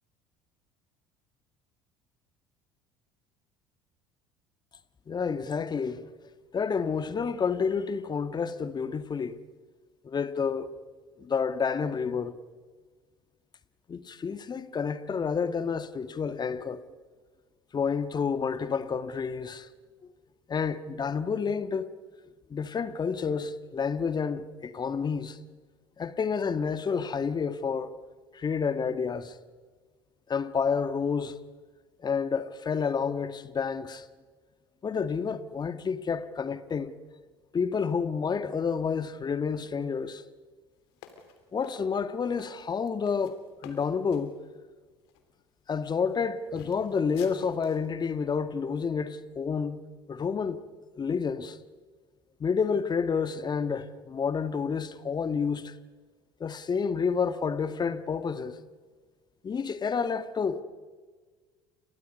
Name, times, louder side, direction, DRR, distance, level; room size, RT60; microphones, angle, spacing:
voice 1, 5.1-6.0 6.5-9.4 10.0-10.7 11.2-12.3 13.9-16.8 17.7-19.7 20.5-21.9 22.5-25.4 26.0-27.9 28.3-29.3 30.3-31.3 32.0-34.0 34.8-36.9 37.5-40.2 41.5-44.3 45.7-49.8 50.1-50.6 51.0-51.6 52.4-55.7 56.4-58.6 59.4-60.6, left 6 dB, 30° left, 1.6 m, -29 dB
sound 1, 41.0-44.3 45.0-45.2 45.8-46.2 46.6-47.9, left 8 dB, 70° left, 3.2 m, -50 dB
29.5 x 27.5 x 5.4 m
hypercardioid pair, 65°, 14 cm